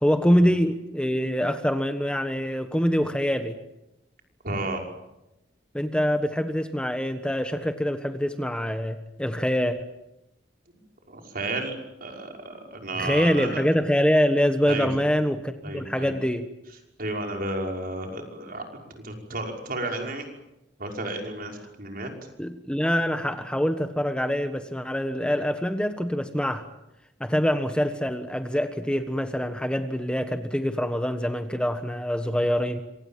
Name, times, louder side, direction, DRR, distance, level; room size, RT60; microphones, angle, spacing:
voice 1, 0.0-3.6 5.7-9.8 13.0-16.5 22.4-26.6 27.2-32.8, equal, 5° left, 8 dB, 1.4 m, -25 dB
voice 2, 4.4-4.8 11.1-13.6 14.7-14.9 15.6-16.1 17.0-18.6 18.9-20.3 20.8-22.1, right 2 dB, 55° right, 3 dB, 5.7 m, -32 dB
27.0 x 25.0 x 7.5 m, 0.89 s
head